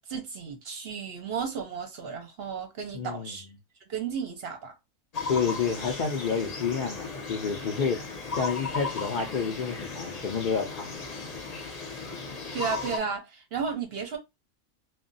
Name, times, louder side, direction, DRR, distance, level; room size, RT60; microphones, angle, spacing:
voice 1, 0.1-3.5 3.9-4.7 12.5-14.2, right 6 dB, 55° right, 0.7 m, -33 dB
voice 2, 2.9-3.4 5.3-8.1 8.4-10.9, left 6 dB, 85° left, 0.4 m, -29 dB
sound 1, 5.1-13.0, left 4 dB, 40° left, 0.6 m, -36 dB
2.3 x 2.2 x 3.8 m
omnidirectional pair, 1.4 m